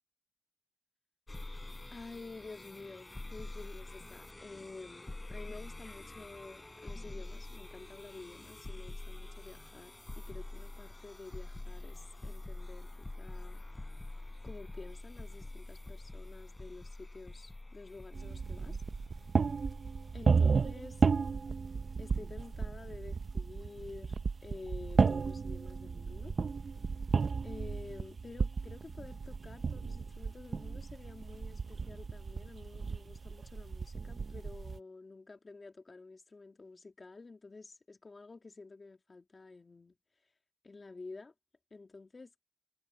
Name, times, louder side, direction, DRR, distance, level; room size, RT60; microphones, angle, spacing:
sound 1, 1.3-20.5, left 2 dB, 25° left, 4.0 m, -46 dB
voice 1, 1.9-13.6 14.4-18.8 20.1-21.1 22.0-24.2 24.4-26.4 27.4-40.0 40.6-41.3 41.7-42.3, left 3 dB, 45° left, 2.3 m, -50 dB
sound 2, 18.1-34.8, right 5 dB, 60° right, 0.6 m, -33 dB
wide cardioid pair, 100°, 0 cm